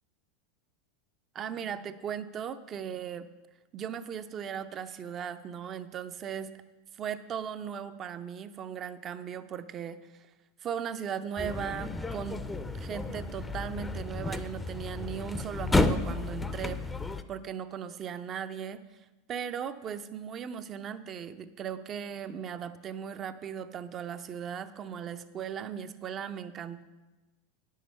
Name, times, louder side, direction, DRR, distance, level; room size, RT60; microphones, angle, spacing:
voice 1, 1.3-3.3 3.7-6.5 6.9-10.0 10.6-12.4 12.7-16.8 17.3-18.8 19.3-26.8, right 8 dB, 35° right, 11 dB, 0.6 m, -37 dB
sound 1, 11.4-17.2, left 2 dB, 10° left, 0.5 m, -32 dB
9.4 x 6.6 x 5.6 m, 1.2 s
hypercardioid pair, 100°, 0 cm